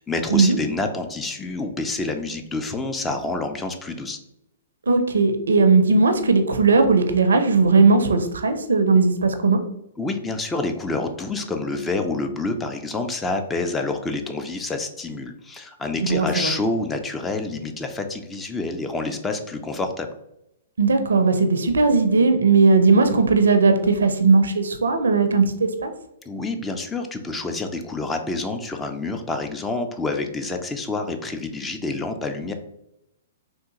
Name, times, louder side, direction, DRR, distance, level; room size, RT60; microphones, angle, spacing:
voice 1, 0.0-4.2 10.0-20.1 26.3-32.5, left 3 dB, 15° left, 6 dB, 0.4 m, -28 dB
voice 2, 4.9-9.6 16.0-16.5 20.8-25.9, right 4 dB, 75° right, 8 dB, 0.4 m, -18 dB
3.5 x 2.5 x 2.8 m, 0.83 s
figure-of-eight pair, 120°, 0 cm